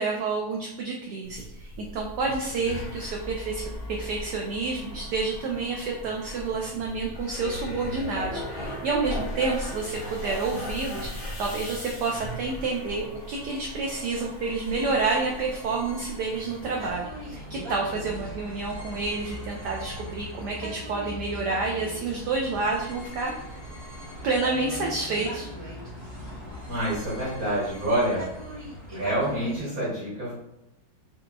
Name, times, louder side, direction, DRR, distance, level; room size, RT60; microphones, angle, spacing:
voice 1, 0.0-11.1 11.4-23.4 24.2-25.5, right 3 dB, 80° right, 0 dB, 0.9 m, -29 dB
sound 1, 1.2-16.9, equal, 80° left, 0.4 m, -38 dB
sound 2, 14.0-29.7, equal, 15° right, 1.1 m, -44 dB
Bus, 16.6-29.6, equal, 50° left, 1.7 m, -41 dB
voice 2, 26.6-28.3 28.9-30.3, right 1 dB, 50° right, -7 dB, 1.4 m, -27 dB
4.7 x 2.9 x 2.2 m, 0.84 s
omnidirectional pair, 2.3 m